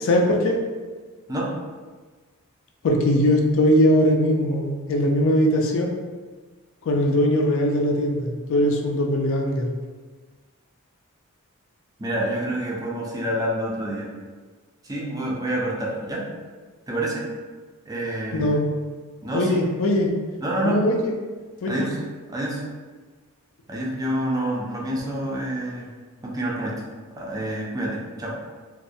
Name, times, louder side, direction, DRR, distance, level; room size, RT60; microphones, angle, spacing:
voice 1, 0.0-0.6 2.8-5.9 6.8-9.7 18.3-18.6 19.3-20.1 20.6-21.1 21.6-21.9, left 1 dB, 65° left, 1 dB, 0.4 m, -20 dB
voice 2, 12.0-14.1 14.8-16.3 16.9-17.3 17.8-18.5 19.2-19.6 20.4-20.9 21.7-22.0 22.3-22.6 23.7-25.9 26.2-26.8 27.1-28.3, right 1 dB, 15° right, -3 dB, 0.3 m, -27 dB
2.3 x 2.1 x 2.6 m, 1.4 s
head